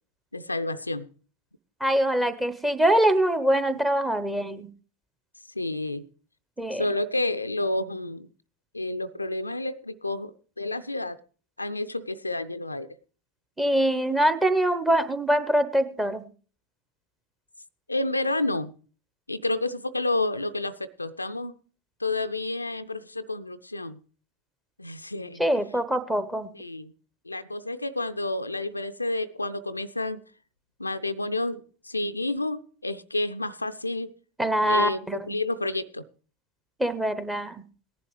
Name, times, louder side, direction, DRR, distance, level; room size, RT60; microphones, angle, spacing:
voice 1, 0.3-1.1 5.6-6.1 6.7-8.3 8.7-11.2 11.6-12.9 17.9-18.7 19.3-21.5 22.0-24.0 24.8-25.4 26.5-26.9 27.3-30.2 30.8-34.1 34.7-36.0, left 2 dB, 85° left, 0.5 m, -30 dB
voice 2, 1.8-4.7 6.6-6.8 13.6-16.2 25.4-26.5 34.4-35.3 36.8-37.6, right 1 dB, 5° right, 1.0 m, -24 dB
18.0 x 11.0 x 3.3 m
figure-of-eight pair, 90°, 0 cm